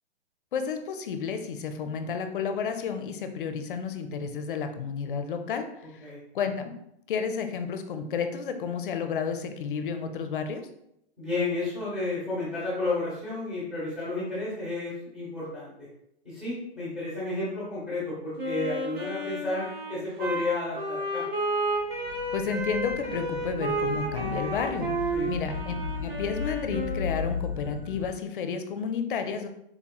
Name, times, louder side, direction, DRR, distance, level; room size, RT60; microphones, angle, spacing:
voice 1, 0.5-5.7 6.3-6.8 7.1-10.7 22.3-29.5, left 6 dB, 55° left, 7 dB, 0.4 m, -31 dB
voice 2, 11.2-15.9 16.2-21.2 25.1-25.3, left 2 dB, ahead, -8 dB, 0.7 m, -32 dB
Wind instrument woodwind instrument, 18.4-27.4, right 1 dB, 70° right, 1.5 m, -32 dB
sound 1, 21.6-28.1, left 4 dB, 35° right, 0.8 m, -36 dB
4.0 x 2.9 x 2.3 m, 0.79 s
hypercardioid pair, 180°, 32 cm